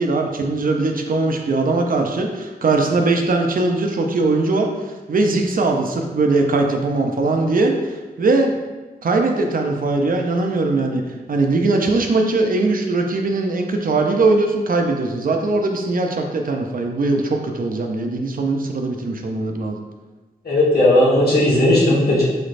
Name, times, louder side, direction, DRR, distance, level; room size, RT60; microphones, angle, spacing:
voice 1, 0.0-4.7 5.1-8.6 9.0-11.0 11.3-19.8, right 3 dB, 60° right, 3 dB, 0.5 m, -20 dB
voice 2, 20.4-22.2, left 1 dB, 75° left, -7 dB, 1.4 m, -15 dB
4.9 x 3.2 x 2.5 m, 1.2 s
wide cardioid pair, 95°, 16 cm